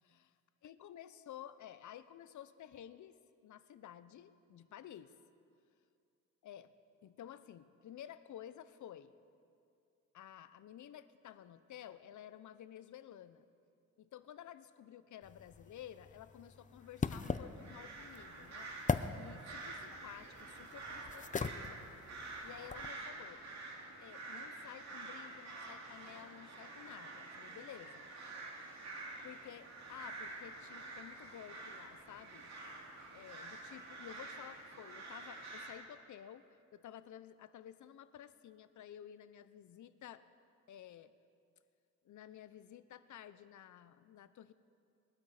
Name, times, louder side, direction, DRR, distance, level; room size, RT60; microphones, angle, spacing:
voice 1, 0.6-3.2 3.4-5.1 6.4-6.7 7.0-9.1 10.1-13.4 14.0-18.7 19.2-21.8 22.4-23.4 24.0-28.1 29.2-32.5 33.1-40.2 40.7-41.1 42.0-44.5, left 10 dB, 70° left, 13 dB, 0.7 m, -53 dB
sound 1, 15.2-22.9, left 5 dB, 25° left, 0.6 m, -41 dB
sound 2, 17.1-35.7, right 3 dB, 60° right, 2.6 m, -48 dB
21.5 x 12.5 x 4.9 m, 2.5 s
cardioid pair, 90°, 31 cm